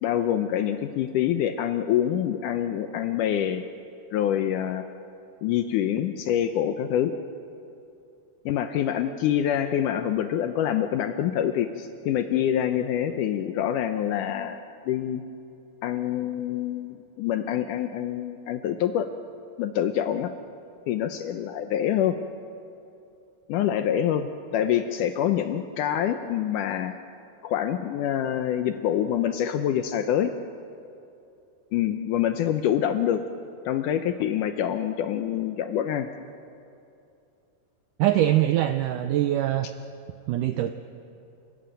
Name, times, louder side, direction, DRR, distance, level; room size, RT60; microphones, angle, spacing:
voice 1, 0.0-3.6 4.1-4.8 5.4-7.1 8.5-14.6 14.9-15.2 15.8-19.1 19.6-20.3 20.9-22.2 23.5-26.9 27.4-30.3 31.7-33.2 33.7-36.1, left 10 dB, 75° left, 8 dB, 1.9 m, -26 dB
voice 2, 38.0-39.7 40.3-40.7, right 13 dB, 80° right, 9 dB, 1.9 m, -23 dB
29.0 x 14.0 x 9.1 m, 2.7 s
omnidirectional pair, 4.3 m